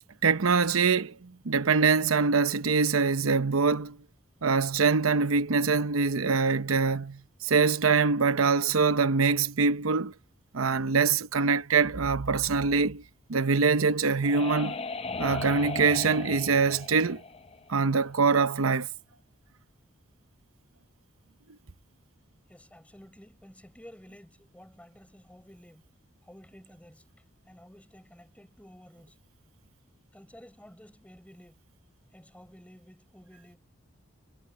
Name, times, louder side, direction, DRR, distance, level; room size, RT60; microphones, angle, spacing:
voice 1, 0.2-4.0 4.4-10.1 10.5-13.0 13.3-14.8 15.2-17.2 17.7-18.9, right 4 dB, 90° right, 0.8 m, -24 dB
sound 1, 13.7-18.3, left 4 dB, 30° left, 0.6 m, -37 dB
voice 2, 22.5-25.9 26.2-27.1 27.5-29.2 30.1-31.6 32.1-33.6, equal, 5° left, 6.9 m, -52 dB
head